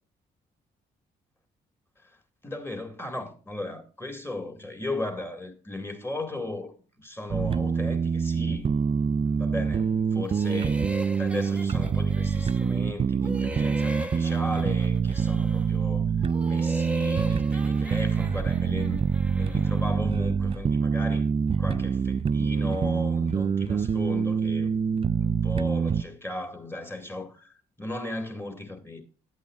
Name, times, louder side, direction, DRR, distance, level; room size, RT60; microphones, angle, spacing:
voice 1, 2.4-8.7 9.3-10.8 11.2-16.1 16.4-21.3 21.6-24.8 25.2-29.0, left 2 dB, 10° left, 1.9 m, -36 dB
sound 1, 7.3-26.0, right 6 dB, 30° right, 0.4 m, -25 dB
sound 2, 10.2-12.9 13.2-15.8 16.2-20.0, equal, 5° right, 0.9 m, -39 dB
11.5 x 8.4 x 2.4 m
hypercardioid pair, 50°, 21 cm